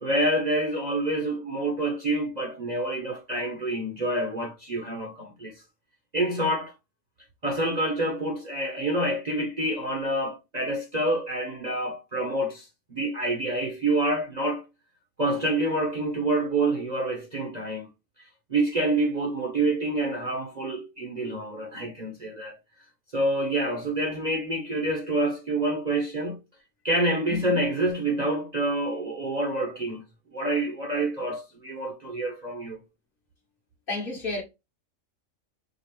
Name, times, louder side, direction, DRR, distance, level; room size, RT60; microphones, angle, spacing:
voice 1, 0.0-5.6 6.1-6.7 7.4-14.6 15.2-17.9 18.5-22.6 23.1-26.4 26.8-30.0 30.3-32.8, right 1 dB, 40° right, 0.7 m, -27 dB
voice 2, 27.3-27.7 33.9-34.4, left 2 dB, 45° left, 1.2 m, -32 dB
4.9 x 2.3 x 3.0 m
omnidirectional pair, 1.4 m